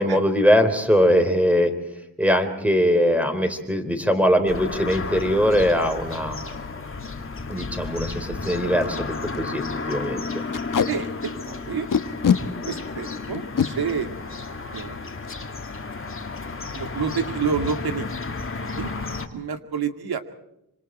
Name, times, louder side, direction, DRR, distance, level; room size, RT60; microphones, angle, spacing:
voice 1, 0.0-1.7 2.2-6.4 7.5-10.3, equal, 5° right, 7 dB, 3.7 m, -21 dB
sound 1, 4.5-19.3, left 3 dB, 35° left, 2.4 m, -33 dB
Packing tape duct tape, 6.9-7.1 7.5-7.6 7.8-8.0 8.4-8.5 8.8-9.0 9.3-9.5 10.5-10.9 11.9-12.4 13.3-13.7 15.2-15.4 15.8-15.9 16.2-16.6, left 7 dB, 55° left, 1.5 m, -22 dB
voice 2, 10.9-11.9 12.7-14.1 14.7-15.1 16.7-18.1 18.8-20.2, right 6 dB, 75° right, 7 dB, 2.4 m, -29 dB
26.5 x 26.0 x 4.4 m, 0.84 s
wide cardioid pair, 120°, 38 cm